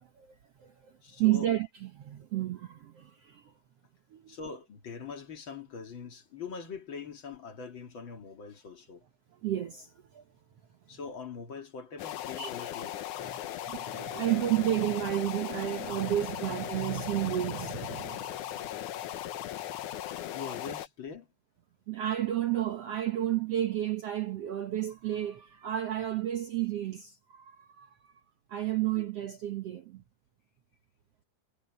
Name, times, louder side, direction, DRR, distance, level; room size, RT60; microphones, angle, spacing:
voice 1, 0.0-3.5 4.1-4.4 9.4-10.2 12.3-12.7 13.2-18.9 21.9-28.1 28.5-30.0, right 13 dB, 70° right, 1.4 m, -32 dB
voice 2, 1.0-1.5 4.3-9.0 10.9-13.0 20.3-21.3 29.0-29.1, left 5 dB, 40° left, 2.3 m, -42 dB
sound 1, 12.0-20.9, left 12 dB, 70° left, 2.2 m, -38 dB
omnidirectional pair, 4.2 m